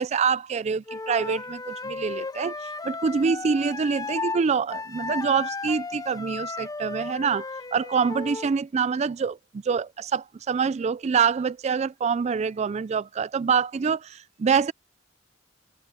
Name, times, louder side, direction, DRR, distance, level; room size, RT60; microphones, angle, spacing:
voice 1, 0.0-14.7, right 6 dB, 35° right, 0.3 m, -26 dB
Wind instrument woodwind instrument, 0.9-4.4 4.7-8.5, left 3 dB, 20° left, 0.6 m, -34 dB
head